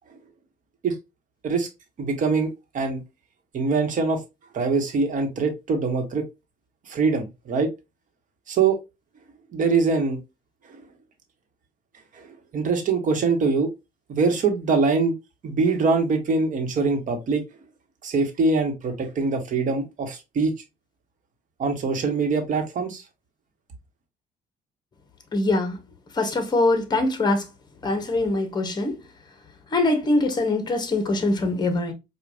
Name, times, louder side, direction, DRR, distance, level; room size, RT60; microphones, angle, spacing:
voice 1, 2.0-3.0 3.5-4.2 4.5-6.2 6.9-7.7 8.5-8.8 9.5-10.2 12.1-12.3 12.5-13.7 14.1-15.1 15.4-17.4 18.0-20.5 21.6-23.0, right 4 dB, 50° right, 1.2 m, -23 dB
voice 2, 25.3-25.8 26.2-27.5 27.8-29.0 29.7-31.9, left 2 dB, 25° left, 1.1 m, -23 dB
4.6 x 2.4 x 2.6 m
cardioid pair, 110°, 17 cm